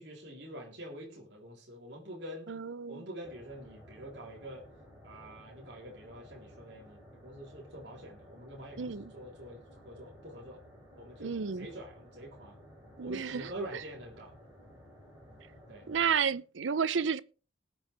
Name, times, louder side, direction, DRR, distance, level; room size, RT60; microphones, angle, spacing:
voice 1, 0.0-2.5 2.9-4.6 5.0-10.6 11.0-12.6 13.0-14.3 15.7-15.9, right 1 dB, 65° right, 3.7 m, -46 dB
voice 2, 2.5-3.0 8.8-9.1 11.2-11.7 13.0-13.8 15.9-17.2, right 6 dB, 85° right, 0.6 m, -32 dB
sound 1, 3.2-16.2, equal, 15° right, 6.7 m, -55 dB
20.0 x 7.5 x 3.4 m
head